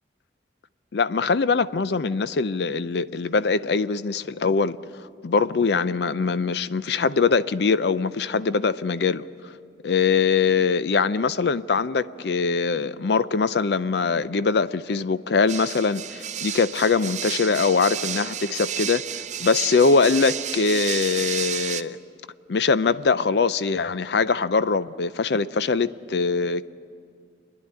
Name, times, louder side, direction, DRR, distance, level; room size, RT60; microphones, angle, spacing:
voice 1, 0.9-9.5 9.8-22.0 22.5-26.7, left 4 dB, 65° left, 0.5 m, -22 dB
sound 1, 15.5-21.8, right 10 dB, 40° right, 0.6 m, -31 dB
27.0 x 10.5 x 9.9 m
head